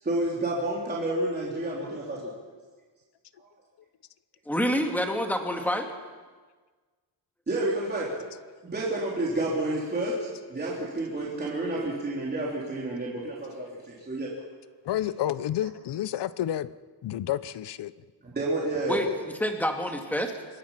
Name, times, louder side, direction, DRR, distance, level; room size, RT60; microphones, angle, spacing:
voice 1, 0.0-2.3 3.4-3.5 7.5-8.1 8.6-10.1 10.5-14.3 18.2-19.0, right 2 dB, 20° right, -5 dB, 3.9 m, -30 dB
voice 2, 4.5-5.9 18.9-20.5, equal, 5° left, 3 dB, 2.2 m, -28 dB
voice 3, 14.8-16.7 17.0-17.9, left 12 dB, 65° left, 16 dB, 0.8 m, -30 dB
26.5 x 21.0 x 5.9 m, 1.4 s
wide cardioid pair, 175°, 45 cm